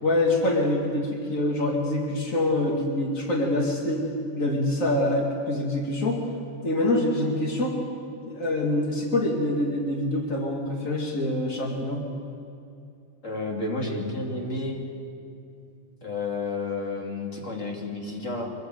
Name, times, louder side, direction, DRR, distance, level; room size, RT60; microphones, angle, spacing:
voice 1, 0.0-4.0 4.3-6.2 6.6-7.7 8.2-12.0, left 1 dB, 70° left, 0 dB, 0.7 m, -25 dB
voice 2, 13.2-14.8 16.0-18.5, left 3 dB, 20° left, 0 dB, 2.3 m, -31 dB
24.0 x 20.0 x 7.9 m, 2.6 s
omnidirectional pair, 5.1 m